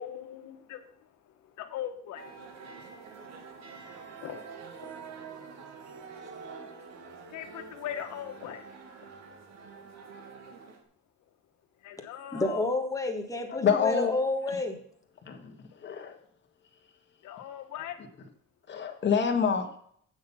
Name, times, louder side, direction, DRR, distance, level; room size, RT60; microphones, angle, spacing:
voice 1, 0.0-2.2 4.2-4.4 4.8-5.2 7.3-8.6 11.8-12.7 17.2-18.0, left 10 dB, 80° left, 1.3 m, -40 dB
sound 1, 2.2-10.8, right 5 dB, 65° right, 1.7 m, -46 dB
voice 2, 12.3-14.8, left 2 dB, 10° left, 1.5 m, -30 dB
voice 3, 13.5-14.2 15.2-15.5 15.8-16.2 18.7-19.8, left 6 dB, 40° left, 1.6 m, -27 dB
8.6 x 6.4 x 5.7 m
cardioid pair, 130°, 29 cm